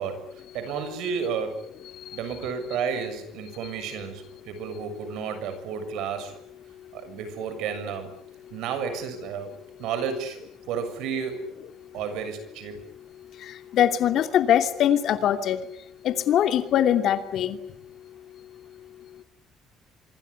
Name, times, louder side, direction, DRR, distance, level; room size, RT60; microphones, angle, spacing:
voice 1, 0.0-1.7 2.1-6.4 6.9-8.1 8.5-10.4 10.7-11.5 11.9-12.8, right 6 dB, 85° right, 10 dB, 6.9 m, -32 dB
voice 2, 13.7-15.6 16.0-17.6, left 10 dB, 60° left, 8 dB, 2.8 m, -22 dB
25.5 x 23.5 x 9.8 m, 0.71 s
cardioid pair, 150°, 0 cm